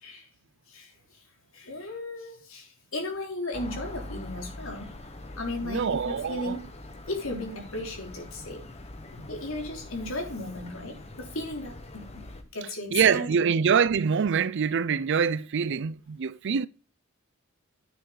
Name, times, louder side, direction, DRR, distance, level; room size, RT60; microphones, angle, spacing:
voice 1, 1.5-5.0 5.4-6.6 7.1-8.6 9.1-12.2 12.5-13.5, left 2 dB, 80° left, 3.4 m, -36 dB
sound 1, 3.5-12.4, left 2 dB, 30° left, 1.3 m, -43 dB
voice 2, 5.6-6.6 12.9-16.7, right 6 dB, 60° right, 0.5 m, -25 dB
9.3 x 6.6 x 4.0 m
head